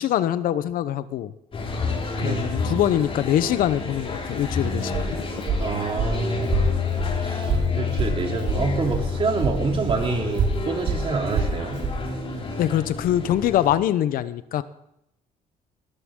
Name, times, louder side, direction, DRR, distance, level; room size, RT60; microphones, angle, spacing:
voice 1, 0.0-1.3 2.2-5.2 12.6-14.6, left 11 dB, 75° left, 14 dB, 0.8 m, -23 dB
sound 1, 1.5-13.8, left 4 dB, 40° left, 5.4 m, -29 dB
voice 2, 2.2-2.5 5.6-6.7 7.2-11.8, right 4 dB, 40° right, 2 dB, 3.0 m, -27 dB
Walk footsteps, 4.3-9.1 9.4-12.0, right 4 dB, 65° right, 4.5 m, -27 dB
20.0 x 13.5 x 3.7 m, 0.80 s
cardioid pair, 110°, 15 cm